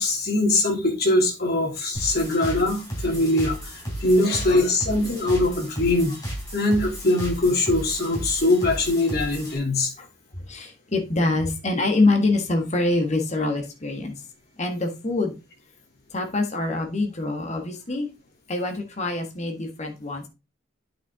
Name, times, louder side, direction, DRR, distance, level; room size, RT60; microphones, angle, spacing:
voice 1, 0.0-6.2 6.5-9.9, left 2 dB, 55° left, 0 dB, 2.8 m, -22 dB
sound 1, 1.9-9.6, equal, 20° left, 4.0 m, -34 dB
voice 2, 10.4-14.1 14.6-15.3 16.1-18.1 18.5-20.3, left 2 dB, 40° left, 3 dB, 1.5 m, -25 dB
8.9 x 5.8 x 3.6 m, 0.27 s
head